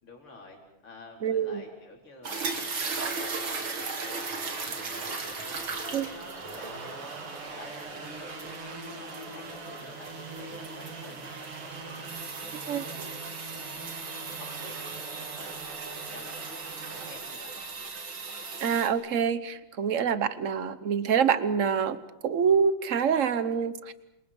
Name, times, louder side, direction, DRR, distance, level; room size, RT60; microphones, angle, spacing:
voice 1, 0.0-2.7 3.2-7.1 7.4-14.0 14.3-15.8 16.1-17.6, left 2 dB, 80° left, 0 dB, 5.5 m, -50 dB
voice 2, 1.2-1.6 5.9-6.1 12.7-12.8 18.6-23.9, right 7 dB, 50° right, 14 dB, 1.1 m, -26 dB
sound 1, 2.2-18.9, right 4 dB, 65° right, 3.1 m, -37 dB
sound 2, 6.0-17.1, right 4 dB, 85° right, 3.5 m, -43 dB
29.0 x 27.0 x 5.5 m, 0.91 s
omnidirectional pair, 2.4 m